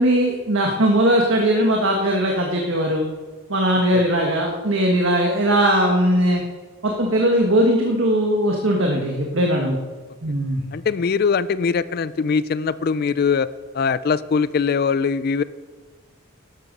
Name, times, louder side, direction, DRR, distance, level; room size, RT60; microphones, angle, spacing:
voice 1, 0.0-3.1 3.5-6.4 6.8-9.8 10.2-10.6, right 1 dB, 60° right, 1 dB, 1.4 m, -19 dB
voice 2, 10.7-13.5 13.7-15.4, left 5 dB, 45° left, 17 dB, 0.3 m, -21 dB
12.5 x 12.0 x 5.3 m, 1.5 s
head